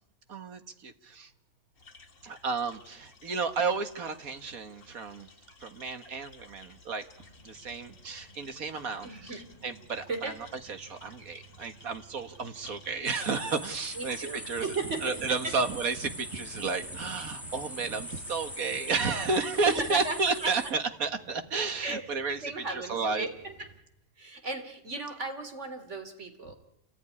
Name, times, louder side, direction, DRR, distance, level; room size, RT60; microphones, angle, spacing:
voice 1, 0.3-1.3 2.2-5.3 5.6-7.0 7.4-10.3 10.7-14.7 15.0-23.3, right 4 dB, 65° right, 8 dB, 2.1 m, -32 dB
sound 1, 1.8-20.6, left 4 dB, 70° left, 2.6 m, -55 dB
sound 2, 7.2-23.8, right 2 dB, 25° left, 3.8 m, -58 dB
voice 2, 9.0-9.5 10.1-10.3 14.0-15.5 19.6-20.5 21.8-22.0 22.4-23.7 24.2-26.5, right 3 dB, 45° right, 7 dB, 3.4 m, -36 dB
sound 3, 13.0-20.7, equal, ahead, 1.2 m, -41 dB
27.5 x 19.5 x 9.9 m, 0.86 s
omnidirectional pair, 1.6 m